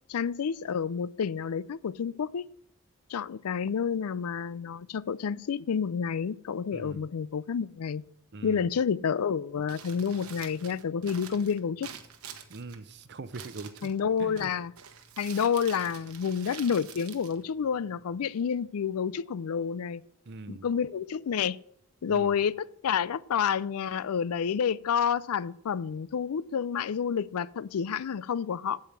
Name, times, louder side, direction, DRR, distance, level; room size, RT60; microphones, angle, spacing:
voice 1, 0.1-2.4 3.1-8.0 8.4-11.9 13.8-14.7 15.2-20.0 20.5-21.6 22.0-28.8, left 7 dB, 85° left, 0.4 m, -29 dB
voice 2, 6.7-7.1 8.3-8.8 12.5-13.9 14.2-14.5 20.3-20.7 22.1-22.3, right 3 dB, 50° right, 0.6 m, -42 dB
Crumpling crinkling, 9.5-18.1, right 7 dB, 80° right, 1.2 m, -48 dB
8.5 x 7.8 x 7.3 m
head